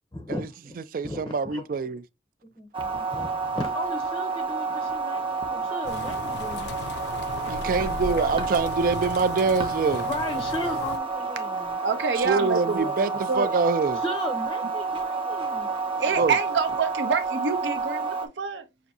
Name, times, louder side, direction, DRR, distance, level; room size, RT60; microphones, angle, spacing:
voice 1, 0.1-0.8 1.0-1.7 2.4-6.8 7.6-7.9 10.0-11.7 13.9-15.7, left 1 dB, 20° left, 0.5 m, -36 dB
voice 2, 0.9-2.0 7.5-10.1 12.3-14.0 16.2-16.3, right 4 dB, 50° right, 0.3 m, -25 dB
sound 1, 2.7-18.3, right 4 dB, 30° right, 0.7 m, -29 dB
sound 2, 5.8-11.0, left 3 dB, 70° left, 0.4 m, -36 dB
voice 3, 11.8-12.9 13.3-13.5 16.0-18.6, right 5 dB, 80° right, 0.6 m, -27 dB
5.8 x 2.6 x 2.6 m
head